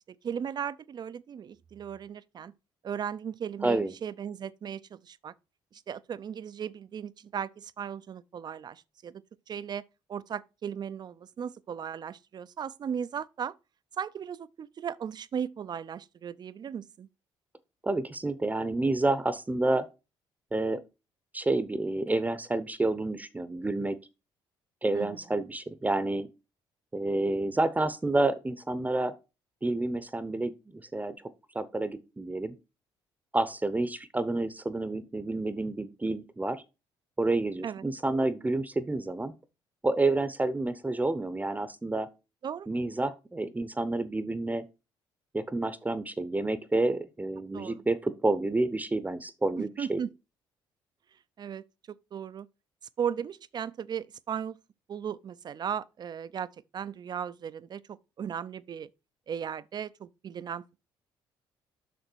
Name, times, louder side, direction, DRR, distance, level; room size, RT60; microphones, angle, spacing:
voice 1, 0.2-2.5 2.8-5.3 5.7-9.2 9.5-9.8 10.1-13.5 14.0-17.1 24.9-25.2 37.6-37.8 42.4-42.7 47.5-47.8 49.6-50.1 51.4-52.5 53.0-54.6 54.9-56.5 56.7-58.9 59.3-60.6, right 8 dB, 45° right, 0.5 m, -36 dB
voice 2, 3.6-3.9 17.8-19.9 20.5-20.8 21.3-24.0 24.8-26.3 26.9-29.1 29.6-31.1 31.5-32.5 33.3-36.6 37.2-39.3 39.8-42.1 42.7-44.6 45.3-50.0, right 2 dB, 15° right, 0.7 m, -29 dB
6.7 x 5.9 x 4.5 m
supercardioid pair, 80°, 10 cm